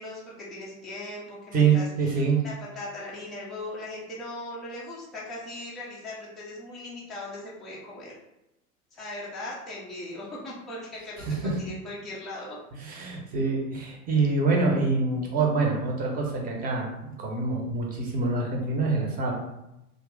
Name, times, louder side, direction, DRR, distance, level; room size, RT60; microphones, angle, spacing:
voice 1, 0.0-8.2 8.9-12.6, left 2 dB, ahead, -8 dB, 0.5 m, -39 dB
voice 2, 1.5-2.4 11.2-11.5 12.8-19.3, right 4 dB, 20° right, -1 dB, 0.8 m, -25 dB
2.7 x 2.5 x 3.6 m, 0.89 s
figure-of-eight pair, 90°, 45 cm